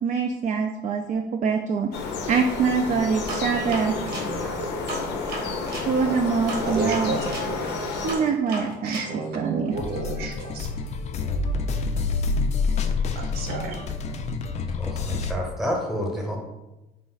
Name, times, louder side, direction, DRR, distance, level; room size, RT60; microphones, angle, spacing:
voice 1, 0.0-4.0 5.8-7.1 8.0-9.8, right 5 dB, 50° right, 3 dB, 0.4 m, -24 dB
sound 1, 1.9-8.1, left 4 dB, 85° left, 0.6 m, -30 dB
sound 2, 3.3-5.9 6.5-9.1, right 2 dB, 85° right, 1.2 m, -34 dB
voice 2, 6.6-7.2 8.8-10.7 13.1-13.8, right 3 dB, 70° right, 3 dB, 0.9 m, -31 dB
sound 3, 9.7-15.3, left 4 dB, 40° left, 0.4 m, -27 dB
voice 3, 14.8-16.4, equal, ahead, 0 dB, 0.9 m, -29 dB
4.1 x 2.5 x 3.9 m, 1.0 s
cardioid pair, 110°, 17 cm